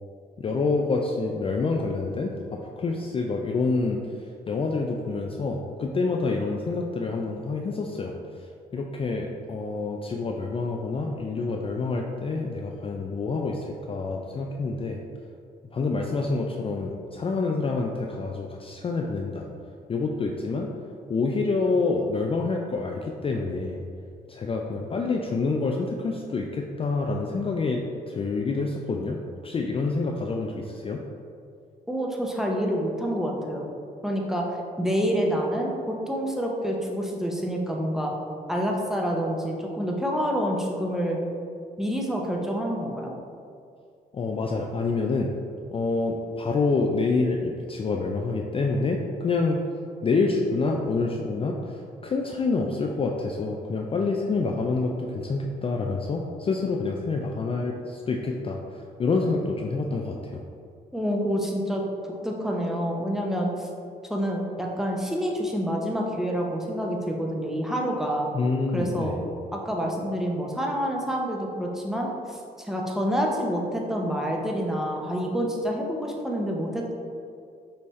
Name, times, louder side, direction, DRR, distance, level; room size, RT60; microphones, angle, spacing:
voice 1, 0.4-2.3 2.8-4.0 4.5-8.1 8.7-15.0 15.7-19.5 19.9-20.7 21.1-23.8 24.3-29.2 29.4-31.0 44.1-45.3 45.7-49.6 50.0-60.4 68.3-69.2, left 3 dB, 30° left, 1 dB, 0.4 m, -27 dB
voice 2, 31.9-33.7 34.0-38.1 38.5-41.2 41.8-43.1 60.9-61.8 62.2-63.7 64.1-68.3 68.7-69.2 69.5-76.9, equal, ahead, -1 dB, 0.7 m, -27 dB
5.3 x 2.8 x 3.1 m, 2.4 s
supercardioid pair, 65°, 18 cm